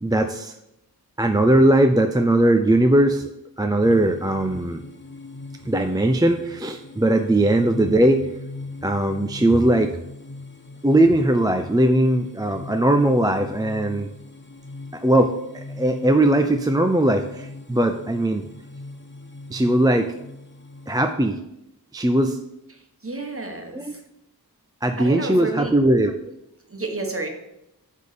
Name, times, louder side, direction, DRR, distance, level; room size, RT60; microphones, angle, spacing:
voice 1, 0.0-0.5 1.2-3.2 3.6-4.8 5.7-8.3 8.8-9.9 10.8-14.1 14.9-18.4 19.5-20.1 20.9-21.4 21.9-22.4 23.7-23.9 24.8-26.1, right 1 dB, 10° right, 5 dB, 0.4 m, -19 dB
sound 1, 3.8-21.1, left 2 dB, 30° left, 0.9 m, -40 dB
voice 2, 23.0-23.8 25.0-25.7 26.7-27.3, right 3 dB, 35° right, 3 dB, 1.4 m, -29 dB
8.0 x 3.7 x 6.6 m, 0.85 s
wide cardioid pair, 55°, 37 cm